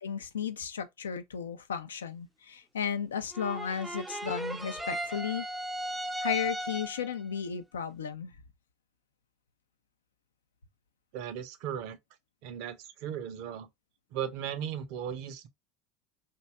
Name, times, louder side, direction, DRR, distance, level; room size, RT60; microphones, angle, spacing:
voice 1, 0.0-5.4 6.2-8.3, left 7 dB, 85° left, 0.4 m, -34 dB
sound 1, 3.3-7.2, right 1 dB, 10° right, 0.4 m, -36 dB
voice 2, 11.1-12.0 12.4-13.7 14.1-15.5, right 9 dB, 65° right, 0.5 m, -37 dB
2.7 x 2.2 x 3.1 m
hypercardioid pair, 75°, 0 cm